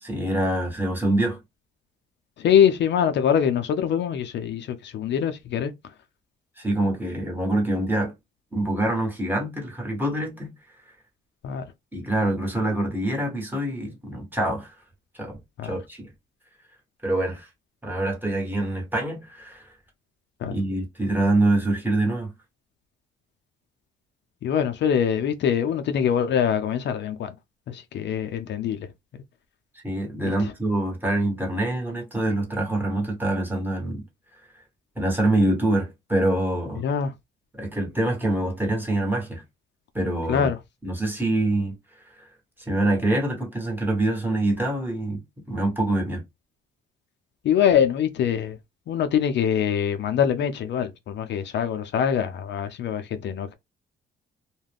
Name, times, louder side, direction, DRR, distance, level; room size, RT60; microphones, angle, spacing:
voice 1, 0.0-1.4 6.6-8.1 8.5-10.5 11.9-14.7 15.2-15.4 15.6-16.1 17.0-17.5 17.8-19.6 20.4-22.3 29.8-34.0 35.0-36.8 37.5-39.4 39.9-40.5 40.8-41.7 42.6-45.2 45.5-46.2, right 1 dB, 10° right, 1.2 m, -25 dB
voice 2, 2.4-5.7 11.4-11.6 15.6-15.7 20.4-20.5 24.4-27.3 27.7-28.9 30.2-30.5 36.8-37.1 40.3-40.6 47.4-48.6 48.9-53.5, left 8 dB, 65° left, 0.5 m, -23 dB
2.3 x 2.2 x 3.4 m
cardioid pair, 90°, 20 cm